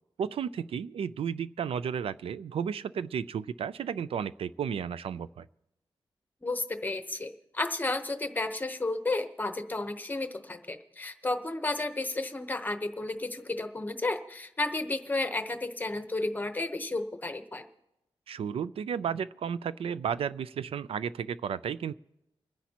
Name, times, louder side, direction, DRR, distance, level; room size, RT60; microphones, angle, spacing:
voice 1, 0.2-5.5 18.3-21.9, right 7 dB, 85° right, 16 dB, 0.4 m, -33 dB
voice 2, 6.4-17.6, left 2 dB, 20° left, 7 dB, 0.9 m, -32 dB
29.0 x 10.0 x 2.9 m, 0.90 s
wide cardioid pair, 165°, 10 cm